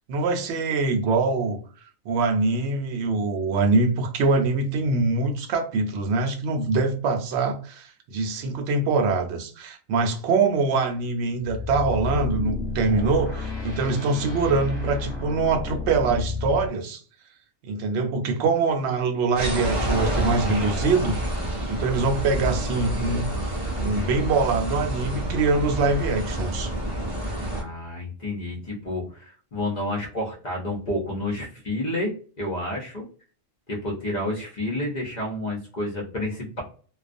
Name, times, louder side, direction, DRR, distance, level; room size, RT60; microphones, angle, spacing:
voice 1, 0.1-1.6 2.1-17.0 17.6-21.1 21.7-26.7, right 3 dB, 65° right, 4 dB, 0.8 m, -24 dB
sound 1, 11.4-16.7, left 3 dB, 25° left, 0.9 m, -31 dB
sound 2, 19.4-27.6, right 1 dB, 35° right, 0.5 m, -28 dB
voice 2, 27.5-33.0 33.7-36.6, left 1 dB, 45° left, -2 dB, 0.6 m, -30 dB
2.3 x 2.3 x 2.5 m, 0.40 s
omnidirectional pair, 1.4 m